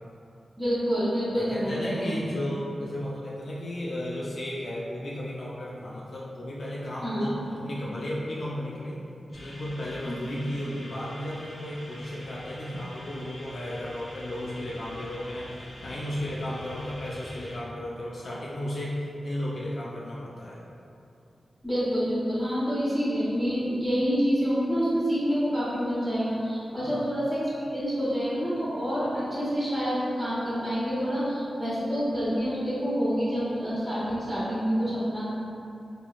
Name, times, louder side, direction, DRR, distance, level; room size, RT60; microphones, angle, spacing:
voice 1, 0.6-2.1 7.0-7.4 10.0-10.1 21.6-35.3, equal, 10° right, -12 dB, 1.0 m, -27 dB
voice 2, 1.3-9.0 9.3-20.6 26.8-27.1, left 1 dB, 55° left, -6 dB, 0.3 m, -34 dB
sound 1, 9.3-17.6, left 1 dB, 85° left, 0.9 m, -45 dB
2.9 x 2.9 x 2.3 m, 2.7 s
wide cardioid pair, 160°, 0 cm